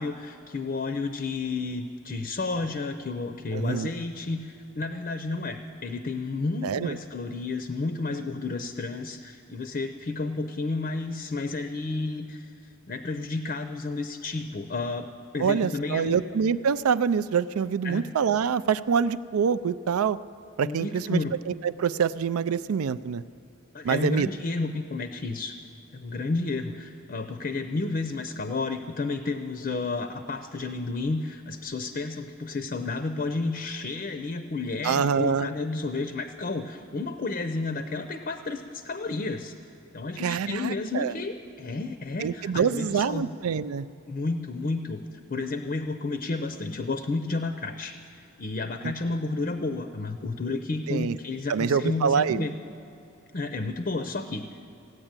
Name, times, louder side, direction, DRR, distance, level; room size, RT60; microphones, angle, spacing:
voice 1, 0.0-15.1 15.3-16.2 17.8-18.1 20.6-21.3 23.7-25.6 25.9-39.5 39.9-43.3 44.1-48.0 48.4-52.5 53.3-54.5, left 3 dB, 40° left, 8 dB, 0.5 m, -31 dB
voice 2, 3.5-3.9 6.6-7.0 15.4-20.2 20.6-21.2 21.5-23.2 23.8-24.3 34.8-35.5 40.2-41.1 42.2-43.9 48.8-48.9 50.9-51.2 51.5-52.4, right 6 dB, 85° right, 15 dB, 0.4 m, -25 dB
15.5 x 9.8 x 8.8 m, 2.9 s
head